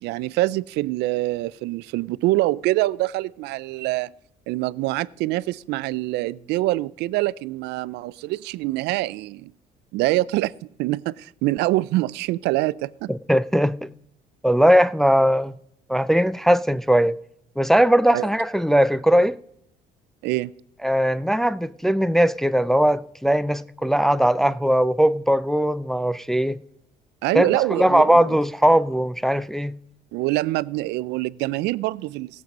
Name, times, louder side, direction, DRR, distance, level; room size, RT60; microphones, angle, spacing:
voice 1, 0.0-4.1 4.5-9.5 9.9-10.5 10.8-13.1 18.1-18.3 20.2-20.5 27.2-28.3 30.1-32.4, right 18 dB, 85° right, 0.4 m, -25 dB
voice 2, 13.1-13.9 14.4-15.5 15.9-17.2 17.6-19.4 20.8-26.6 27.3-29.8, equal, ahead, 0.4 m, -19 dB
17.0 x 7.6 x 5.2 m
cardioid pair, 110°, 17 cm